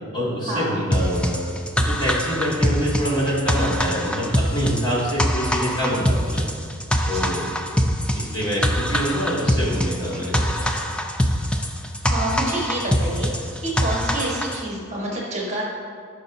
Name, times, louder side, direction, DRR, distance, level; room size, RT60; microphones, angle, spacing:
voice 1, 0.1-1.4 1.8-6.4 7.1-7.5 8.1-10.7, equal, 25° left, -7 dB, 2.3 m, -25 dB
sound 1, 0.9-14.6, equal, 5° left, 0.4 m, -23 dB
voice 2, 12.1-15.6, right 1 dB, 35° right, -3 dB, 1.5 m, -28 dB
18.0 x 6.1 x 2.7 m, 2.2 s
head